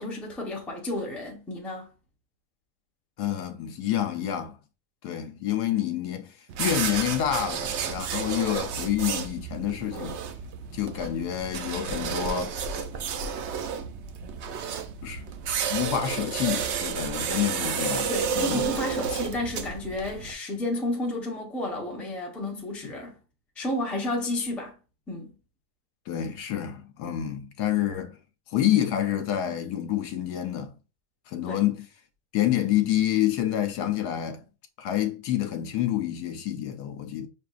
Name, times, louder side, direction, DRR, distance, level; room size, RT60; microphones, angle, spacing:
voice 1, 0.0-1.9 18.1-23.2 23.6-24.8 25.1-25.4 31.5-31.6, left 1 dB, ahead, 0.6 m, -31 dB
voice 2, 3.2-4.6 5.0-6.3 6.6-10.2 10.7-12.6 15.0-15.3 15.7-18.1 18.4-18.6 26.1-28.2 28.5-30.7 31.3-31.9 32.3-34.4 34.8-37.3, left 11 dB, 80° left, 1.2 m, -28 dB
sound 1, 6.5-20.3, right 6 dB, 75° right, 0.6 m, -31 dB
6.1 x 2.5 x 2.4 m
omnidirectional pair, 1.7 m